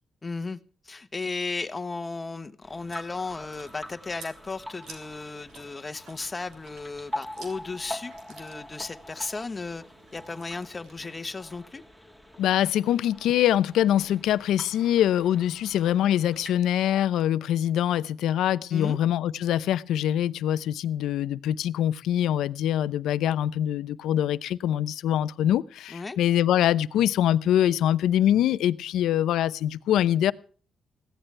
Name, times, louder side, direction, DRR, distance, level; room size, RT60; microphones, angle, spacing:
voice 1, 0.2-0.6 0.8-9.8 10.1-11.8 18.7-19.0 25.9-26.2, left 3 dB, 25° left, 1.2 m, -35 dB
sound 1, 2.6-16.6, left 1 dB, 10° right, 2.8 m, -44 dB
Chewing mastication, 2.7-11.5, right 5 dB, 90° right, 3.6 m, -53 dB
voice 2, 12.4-30.3, left 11 dB, 90° left, 0.7 m, -24 dB
21.5 x 16.0 x 3.4 m
cardioid pair, 90°, 0 cm